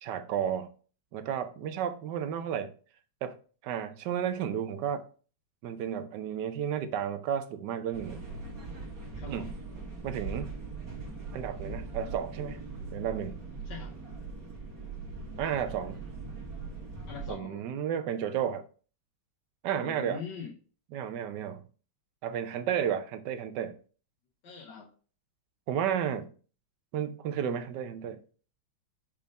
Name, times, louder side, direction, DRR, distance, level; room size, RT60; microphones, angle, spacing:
voice 1, 0.0-0.7 1.1-2.7 3.2-3.4 3.6-5.1 5.6-8.2 9.3-9.5 10.0-10.5 11.3-12.6 12.9-13.4 15.4-16.0 17.3-18.6 19.6-20.2 20.9-21.6 22.2-23.8 25.7-26.3 26.9-28.2, right 9 dB, 75° right, 1.2 m, -32 dB
sound 1, 7.9-17.3, right 3 dB, 50° right, 1.9 m, -40 dB
voice 2, 9.1-9.5 13.6-14.0 17.1-17.6 19.8-20.5 24.4-24.9, left 6 dB, 75° left, 1.4 m, -42 dB
5.3 x 3.5 x 5.1 m
omnidirectional pair, 2.0 m